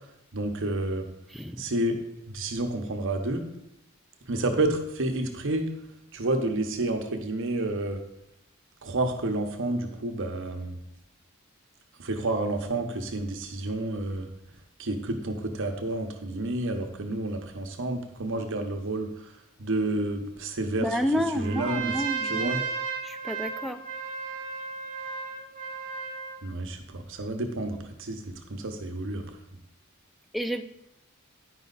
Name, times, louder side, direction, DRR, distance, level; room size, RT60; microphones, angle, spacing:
voice 1, 0.3-1.1 1.6-2.0 2.3-3.5 4.3-5.7 6.1-8.0 8.8-10.7 12.0-14.3 14.8-19.3 19.6-20.9 21.3-21.9 22.3-22.6 26.4-29.2, right 2 dB, 60° right, 4 dB, 0.9 m, -30 dB
voice 2, 1.3-1.6 20.8-22.6 23.0-23.8 30.3-30.6, equal, ahead, 6 dB, 0.4 m, -30 dB
Trumpet, 21.4-26.4, right 5 dB, 40° right, 0.9 m, -34 dB
9.8 x 5.4 x 4.0 m, 0.81 s
head